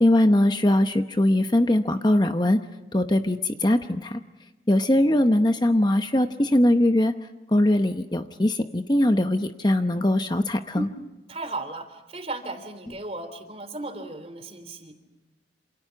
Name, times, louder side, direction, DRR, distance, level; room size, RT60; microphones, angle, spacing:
voice 1, 0.0-2.6 2.9-4.2 4.7-7.1 7.5-10.9, left 1 dB, 25° left, 7 dB, 0.8 m, -21 dB
voice 2, 11.3-14.9, right 2 dB, 35° right, 8 dB, 3.3 m, -35 dB
27.5 x 27.5 x 5.9 m, 1.1 s
head